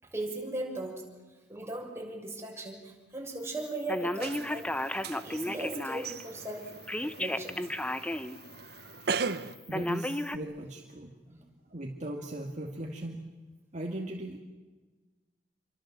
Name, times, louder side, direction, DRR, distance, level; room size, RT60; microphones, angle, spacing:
voice 1, 0.0-1.0 1.5-4.9 5.2-6.7 7.0-7.6 11.3-11.4, right 2 dB, 15° right, -1 dB, 6.8 m, -38 dB
Telephone, 3.9-6.2 6.9-8.4 8.8-8.9 9.7-10.4, left 1 dB, 5° left, 0.9 m, -33 dB
sound 1, 4.2-9.6, right 5 dB, 60° right, 1.0 m, -38 dB
voice 2, 9.7-11.2 11.7-13.2 13.7-14.4, right 1 dB, 40° right, 0 dB, 2.4 m, -38 dB
28.5 x 25.0 x 7.7 m, 1.2 s
head